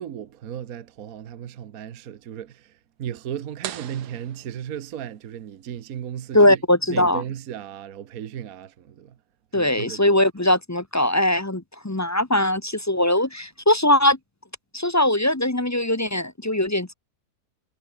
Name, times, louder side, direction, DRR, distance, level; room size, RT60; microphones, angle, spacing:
voice 1, 0.0-6.6 6.9-9.2 9.5-10.2 13.1-13.4, right 9 dB, 60° right, 1.4 m, -35 dB
sound 1, 3.6-5.3, right 11 dB, 75° right, 1.5 m, -39 dB
voice 2, 6.3-7.2 9.5-14.2 14.7-16.9, left 1 dB, 15° left, 0.7 m, -20 dB
omnidirectional pair, 1.8 m